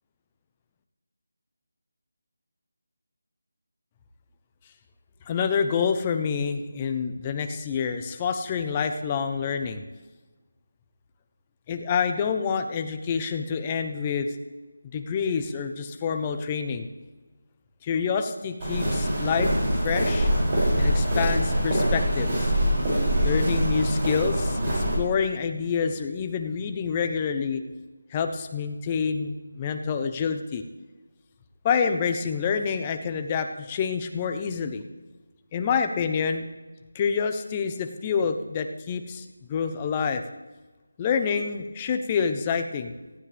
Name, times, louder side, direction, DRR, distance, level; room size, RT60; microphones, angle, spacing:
voice 1, 5.3-9.8 11.7-14.3 14.9-16.9 17.8-19.5 19.8-20.3 20.8-22.5 23.2-27.6 28.1-30.6 31.6-34.8 35.5-36.5 36.9-40.2 41.0-42.9, left 6 dB, 15° left, 7 dB, 0.8 m, -27 dB
Walk footsteps, 18.6-24.9, equal, 25° right, 6.5 m, -24 dB
19.0 x 15.0 x 3.4 m, 1.2 s
figure-of-eight pair, 175°, 0 cm